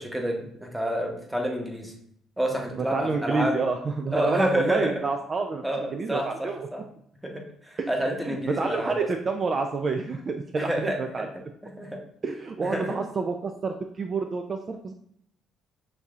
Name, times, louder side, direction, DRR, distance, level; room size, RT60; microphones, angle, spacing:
voice 1, 0.0-1.9 2.4-3.5 4.1-5.0 5.6-6.8 7.2-9.1 10.6-11.3 11.8-12.0 12.6-13.0, right 1 dB, 5° right, 1 dB, 0.9 m, -29 dB
voice 2, 2.7-5.6 5.9-6.7 7.8-7.9 8.2-11.3 12.2-14.9, right 4 dB, 40° right, 5 dB, 0.3 m, -28 dB
6.4 x 2.7 x 2.3 m, 0.68 s
cardioid pair, 90°, 0 cm